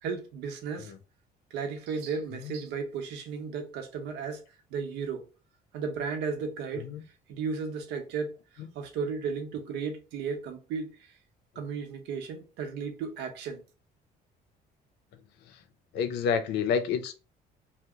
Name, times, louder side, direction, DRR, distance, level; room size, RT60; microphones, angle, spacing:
voice 1, 0.0-0.9 1.5-4.4 4.7-5.3 5.7-6.9 7.3-11.2 11.6-13.6, right 5 dB, 85° right, 0.7 m, -34 dB
voice 2, 15.9-17.1, left 6 dB, 80° left, 0.5 m, -29 dB
2.8 x 2.0 x 3.5 m
cardioid pair, 110°, 17 cm